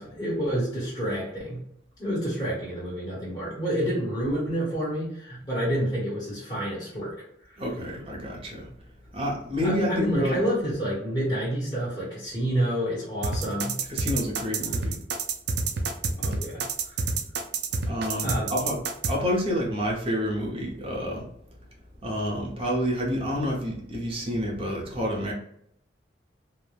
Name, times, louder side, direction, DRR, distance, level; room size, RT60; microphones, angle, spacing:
voice 1, 0.0-1.6 2.0-7.1 7.5-7.6 9.6-13.8 16.1-17.0 18.2-18.6, equal, 25° left, -8 dB, 1.0 m, -29 dB
voice 2, 7.6-8.7 9.1-10.4 13.9-15.0 17.9-18.8 19.1-21.3 22.0-25.3, equal, 30° right, -2 dB, 0.7 m, -29 dB
sound 1, 13.2-19.1, right 4 dB, 60° right, 0.4 m, -27 dB
3.0 x 2.1 x 2.3 m, 0.71 s
head